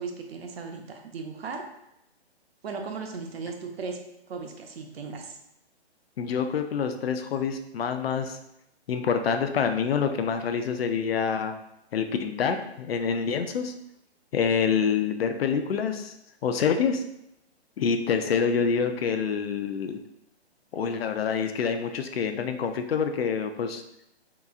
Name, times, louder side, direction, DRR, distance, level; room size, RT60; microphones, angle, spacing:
voice 1, 0.0-1.6 2.6-4.0 4.3-5.4, right 4 dB, 65° right, 3 dB, 0.7 m, -36 dB
voice 2, 6.2-8.4 8.9-11.5 11.9-13.7 14.3-16.1 16.4-17.0 17.8-20.0 20.7-23.8, left 6 dB, 65° left, 7 dB, 0.5 m, -26 dB
3.5 x 2.9 x 2.4 m, 0.84 s
hypercardioid pair, 160°, 33 cm